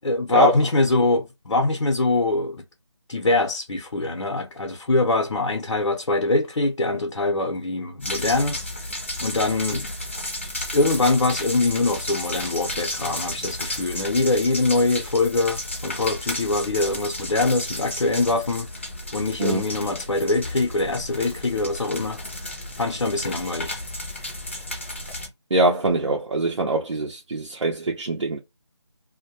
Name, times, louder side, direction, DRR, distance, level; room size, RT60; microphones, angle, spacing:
voice 1, 0.0-2.6 3.1-8.6 9.2-9.9 10.7-18.7 19.1-22.2 22.8-23.7, left 2 dB, 90° left, 0.7 m, -23 dB
sound 1, 8.0-25.3, left 1 dB, 25° left, 0.5 m, -33 dB
voice 2, 25.5-28.4, right 2 dB, 80° right, 0.6 m, -23 dB
2.2 x 2.1 x 2.8 m
figure-of-eight pair, 170°, 15 cm